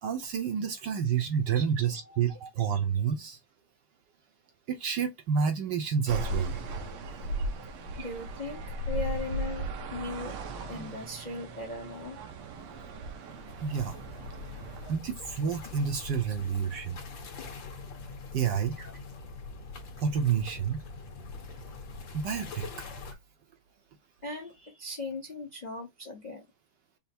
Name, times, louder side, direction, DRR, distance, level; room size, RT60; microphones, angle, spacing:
voice 1, 0.0-3.4 4.7-6.6 7.9-8.1 13.6-13.9 14.9-17.0 18.3-18.8 20.0-20.8 22.1-22.9, right 7 dB, 65° right, 1.2 m, -29 dB
voice 2, 1.9-2.3 3.0-3.1 7.6-7.7 8.0-10.4 10.7-12.2 16.3-16.4 18.8-19.0 24.2-26.4, left 3 dB, 35° left, 0.7 m, -39 dB
sound 1, 6.1-15.0, right 2 dB, 80° right, 1.7 m, -37 dB
sound 2, 13.2-23.1, left 4 dB, 60° left, 1.9 m, -44 dB
5.7 x 2.0 x 4.2 m
omnidirectional pair, 2.4 m